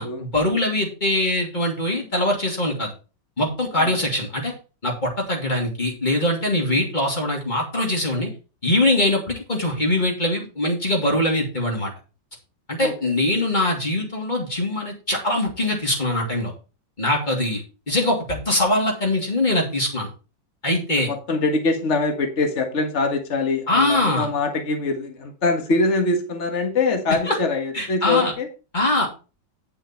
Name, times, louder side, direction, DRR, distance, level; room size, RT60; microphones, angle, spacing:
voice 1, 0.0-2.9 3.4-4.5 4.8-8.3 8.6-11.9 12.7-16.5 17.0-20.1 20.6-21.1 23.7-24.3 27.2-27.4 27.7-28.3 28.7-29.1, left 1 dB, 25° left, 0 dB, 2.9 m, -22 dB
voice 2, 12.8-13.1 21.1-28.5, left 3 dB, 40° left, 5 dB, 1.8 m, -23 dB
10.0 x 5.8 x 4.5 m, 0.33 s
omnidirectional pair, 2.0 m